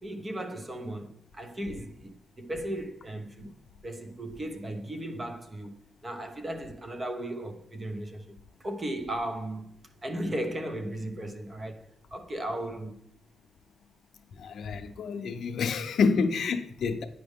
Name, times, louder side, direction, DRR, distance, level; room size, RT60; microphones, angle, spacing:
voice 1, 0.0-3.5 3.8-5.8 6.0-9.7 10.0-13.0, right 1 dB, 25° right, 0.8 m, -36 dB
voice 2, 14.4-17.0, left 5 dB, 65° left, 0.7 m, -28 dB
9.3 x 5.0 x 3.6 m
cardioid pair, 100°, 0 cm